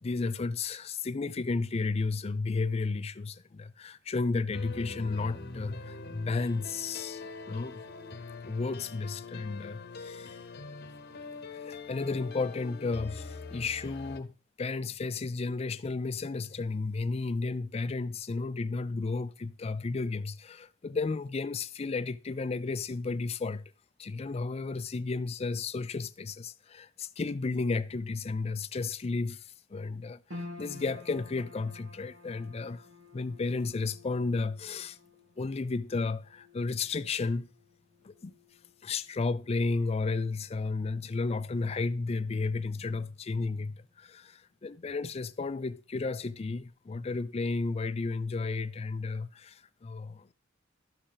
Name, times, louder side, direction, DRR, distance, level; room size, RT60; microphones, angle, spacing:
voice 1, 0.0-7.8 8.5-10.4 11.5-14.3 14.6-23.7 24.0-32.9 33.1-35.0 35.4-37.5 38.0-38.3 38.8-50.3, left 3 dB, 30° left, 0.4 m, -33 dB
sound 1, 4.5-14.2, left 4 dB, 55° left, 0.9 m, -43 dB
sound 2, 30.3-42.7 43.0-43.9 44.4-44.5, left 2 dB, 70° right, 2.0 m, -51 dB
12.5 x 6.4 x 3.9 m
head